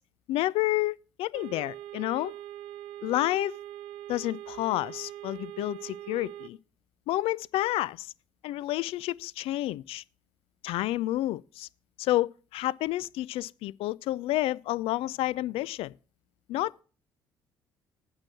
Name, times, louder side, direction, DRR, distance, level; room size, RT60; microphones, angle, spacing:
voice 1, 0.3-2.3 3.0-3.6 4.1-6.6 7.1-8.1 8.4-10.0 10.6-11.7 12.0-15.9 16.5-16.8, left 16 dB, 55° left, 0.3 m, -30 dB
sound 1, 1.3-6.5, right 12 dB, 65° right, 0.7 m, -42 dB
8.8 x 5.5 x 7.1 m
figure-of-eight pair, 50°, 12 cm